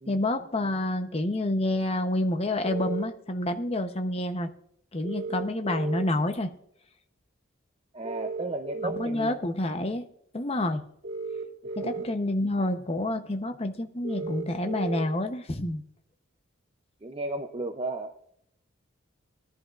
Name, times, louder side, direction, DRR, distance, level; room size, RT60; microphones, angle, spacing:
voice 1, 0.1-4.5 4.9-6.5 8.8-10.0 10.3-10.8 11.8-15.8, left 1 dB, 30° left, 7 dB, 0.8 m, -28 dB
sound 1, 2.6-3.0 5.0-6.0 8.0-9.0 11.0-12.0 14.0-15.0, right 3 dB, 65° right, 1.9 m, -34 dB
voice 2, 7.9-9.5 11.6-12.1 17.0-18.1, right 2 dB, 25° right, 6 dB, 0.5 m, -35 dB
18.5 x 11.0 x 2.5 m, 0.72 s
head